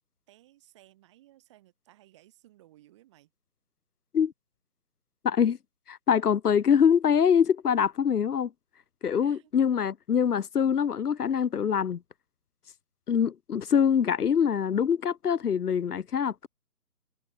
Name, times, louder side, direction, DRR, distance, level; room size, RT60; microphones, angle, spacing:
voice 1, 0.3-3.3 9.2-9.5, right 15 dB, 20° right, 3.4 m, -58 dB
voice 2, 5.2-5.6 5.9-8.5 9.0-12.0 13.1-16.5, left 7 dB, 65° left, 0.8 m, -24 dB
figure-of-eight pair, 160°, 49 cm